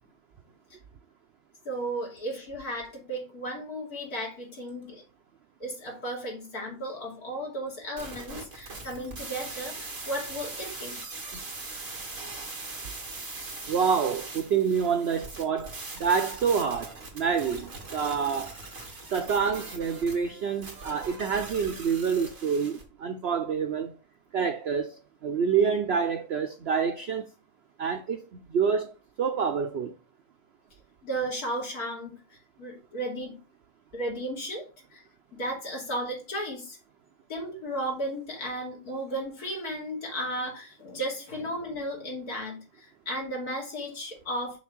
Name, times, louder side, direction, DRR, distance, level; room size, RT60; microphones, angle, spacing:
voice 1, 1.6-5.0 5.6-11.0 31.0-33.4 33.9-35.0 35.3-36.8 37.3-44.6, right 1 dB, 70° left, 3.1 m, -34 dB
sound 1, 8.0-22.8, right 3 dB, 50° right, 2.2 m, -41 dB
voice 2, 13.7-15.7 16.0-18.6 19.1-24.0 24.3-27.3 27.8-29.9, right 6 dB, 65° right, 0.6 m, -27 dB
6.2 x 3.5 x 6.0 m
omnidirectional pair, 1.7 m